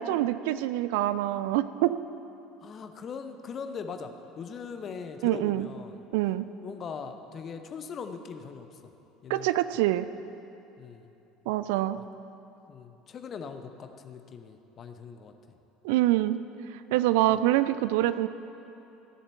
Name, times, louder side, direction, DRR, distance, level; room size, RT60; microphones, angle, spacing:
voice 1, 0.0-2.0 5.2-5.7 6.1-6.5 9.3-10.1 11.5-12.0 15.8-16.4 16.9-18.3, right 15 dB, 60° right, 14 dB, 0.4 m, -25 dB
voice 2, 2.6-6.0 6.6-8.9 9.2-9.5 10.8-11.1 12.0-12.1 12.7-15.3 17.3-17.4, left 6 dB, 35° left, 7 dB, 0.9 m, -40 dB
15.0 x 7.2 x 8.4 m, 2.9 s
figure-of-eight pair, 65°, 0 cm